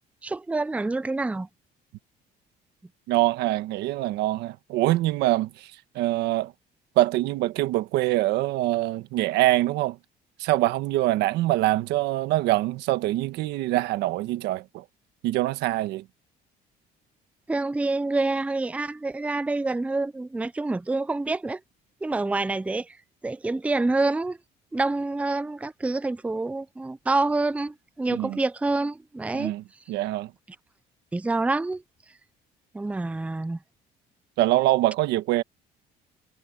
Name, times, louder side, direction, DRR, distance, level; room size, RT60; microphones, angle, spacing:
voice 1, 0.2-1.5 17.5-21.6 22.0-23.0 23.2-24.4 24.7-29.5 31.1-31.8 32.7-33.6, right 2 dB, 10° right, 0.5 m, -27 dB
voice 2, 3.1-5.7 5.9-6.5 7.0-10.0 10.4-14.8 15.2-16.0 28.1-28.4 29.3-29.6 29.9-30.3 34.4-35.4, right 16 dB, 90° right, 1.3 m, -24 dB
cardioid pair, 110°, 17 cm